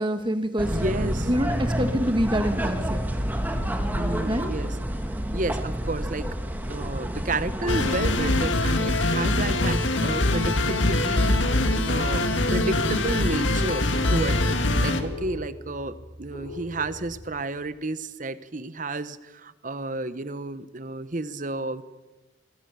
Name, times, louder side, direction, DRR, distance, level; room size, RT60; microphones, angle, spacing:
voice 1, 0.0-0.8 1.3-3.1 4.3-4.5, equal, 25° right, 8 dB, 1.4 m, -26 dB
sound 1, 0.6-8.5, equal, 10° right, 1.6 m, -29 dB
voice 2, 0.7-1.3 3.9-4.8 5.3-6.4 6.7-21.8, right 2 dB, 40° right, 14 dB, 1.0 m, -31 dB
sound 2, 7.5-17.3, left 2 dB, 60° left, 6.7 m, -41 dB
sound 3, 7.7-15.0, left 2 dB, 75° left, 2.1 m, -23 dB
25.5 x 21.5 x 7.0 m, 1.1 s
head